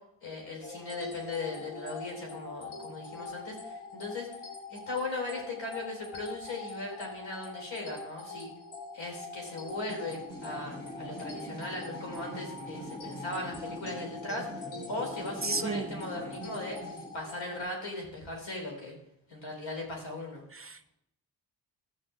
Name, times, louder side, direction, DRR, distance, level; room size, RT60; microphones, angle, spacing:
voice 1, 0.2-4.3 4.7-8.5 8.9-16.8 17.1-18.9 19.3-20.4, left 2 dB, 65° left, 0 dB, 4.4 m, -38 dB
sound 1, 0.6-17.6, left 4 dB, 85° left, 1.8 m, -44 dB
sound 2, 9.7-17.2, right 1 dB, 20° left, 3.1 m, -44 dB
voice 2, 15.4-15.9 20.5-20.9, right 3 dB, 30° right, 12 dB, 0.6 m, -33 dB
14.5 x 7.0 x 3.7 m, 0.74 s
supercardioid pair, 45°, 47 cm